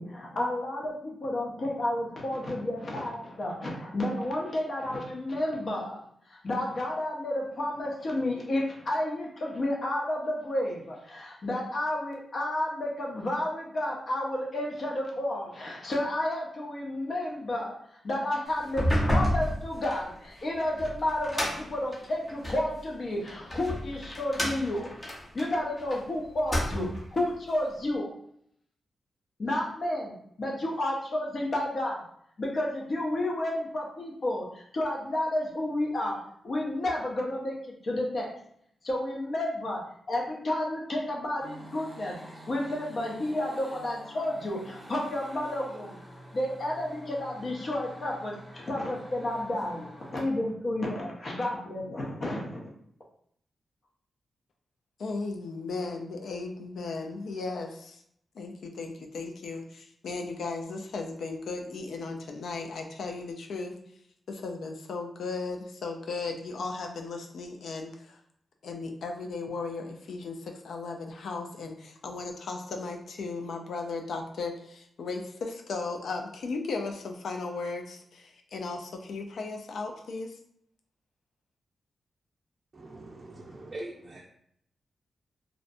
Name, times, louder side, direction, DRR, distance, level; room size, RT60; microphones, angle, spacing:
voice 1, 0.0-6.0 6.3-24.9 25.3-28.1 29.4-32.0 32.4-36.2 36.4-38.3 38.8-39.8 40.1-42.2 42.5-46.0 46.3-52.7, left 1 dB, 55° left, -2 dB, 0.7 m, -31 dB
sound 1, 18.6-22.7 23.3-26.0 26.3-27.1, equal, 20° left, 0.7 m, -30 dB
sound 2, 41.4-50.3, equal, 15° right, 0.9 m, -48 dB
voice 2, 55.0-58.0 58.4-63.7 64.3-68.2 68.6-80.4, left 3 dB, 80° left, 3 dB, 0.3 m, -36 dB
voice 3, 82.7-84.2, right 2 dB, 45° right, -2 dB, 0.4 m, -42 dB
2.5 x 2.1 x 2.5 m, 0.69 s
cardioid pair, 80°, 0 cm